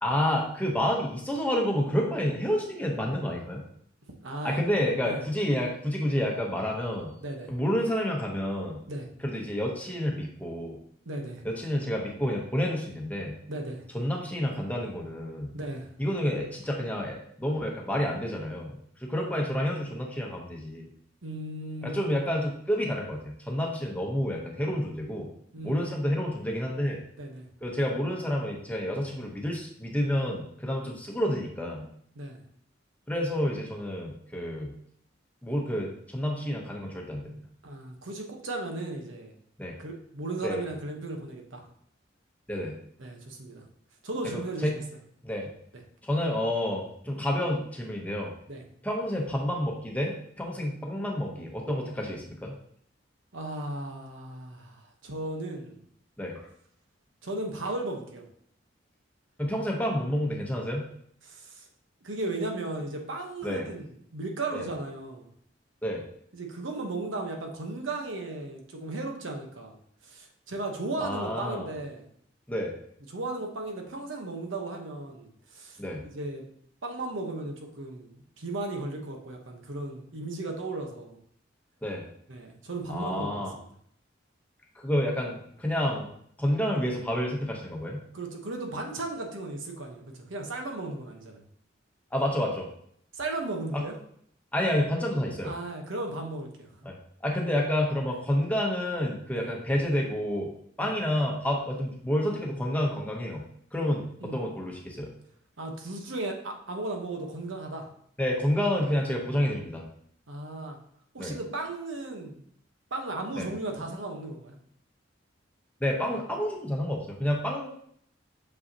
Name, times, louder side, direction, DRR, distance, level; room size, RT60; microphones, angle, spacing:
voice 1, 0.0-3.6 4.4-7.1 7.5-8.8 9.2-10.8 11.4-13.4 13.9-15.5 16.0-18.8 19.1-20.9 21.8-25.3 25.6-27.0 27.6-31.9 33.1-34.7 35.4-37.4 39.6-39.8 40.4-40.6 42.5-42.8 44.6-44.8 45.2-45.5 46.0-48.3 48.8-52.5 56.2-56.3 59.4-60.9 63.4-63.7 64.5-64.7 65.8-66.0 71.0-71.7 72.5-72.7 75.8-76.0 81.8-82.0 82.9-83.5 84.8-86.1 86.4-88.0 92.1-92.7 93.7-93.8 94.5-95.5 96.8-97.0 97.2-100.5 100.8-103.4 103.7-105.1 108.2-109.8 111.2-111.4 113.4-113.5 115.8-117.7, equal, 10° left, -1 dB, 0.9 m, -29 dB
voice 2, 4.2-4.6 5.0-5.2 7.2-7.5 8.9-9.1 11.1-11.4 13.5-13.8 15.5-15.9 21.2-22.2 25.5-25.9 27.2-27.5 32.1-32.4 37.6-39.4 39.8-41.7 43.0-43.6 44.0-44.8 48.5-48.6 53.3-55.8 57.2-58.2 61.2-61.7 62.0-65.3 66.3-69.8 70.0-72.0 73.1-76.4 76.8-81.2 82.3-83.6 88.1-91.4 93.1-94.0 95.4-96.7 99.3-99.5 100.8-100.9 104.2-104.4 105.6-107.9 110.3-110.8 111.1-112.4 112.9-114.6, right 2 dB, 80° right, 2 dB, 1.1 m, -36 dB
6.4 x 5.3 x 2.9 m, 0.66 s
head